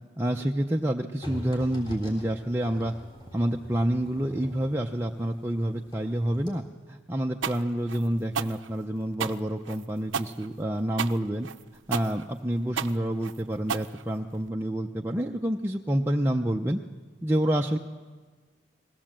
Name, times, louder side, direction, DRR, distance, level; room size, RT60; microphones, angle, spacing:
voice 1, 0.2-2.9 3.3-11.5 11.9-16.8 17.2-17.8, right 1 dB, 10° right, 1 dB, 0.5 m, -28 dB
sound 1, 1.2-6.1 6.3-6.5, equal, 25° left, 3.8 m, -43 dB
sound 2, 7.4-14.5, right 7 dB, 90° right, 0.6 m, -33 dB
20.5 x 17.0 x 7.5 m, 1.5 s
head